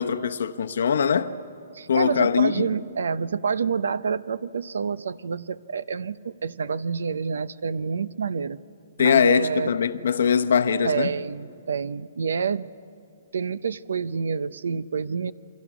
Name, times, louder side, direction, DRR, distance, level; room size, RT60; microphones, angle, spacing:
voice 1, 0.0-1.3 1.9-2.7 9.0-11.1, left 7 dB, 70° left, 0.9 m, -22 dB
voice 2, 1.7-8.6 9.0-9.7 10.8-12.7 13.3-15.3, right 6 dB, 90° right, 0.7 m, -28 dB
29.0 x 23.5 x 6.2 m
hypercardioid pair, 165°, 0 cm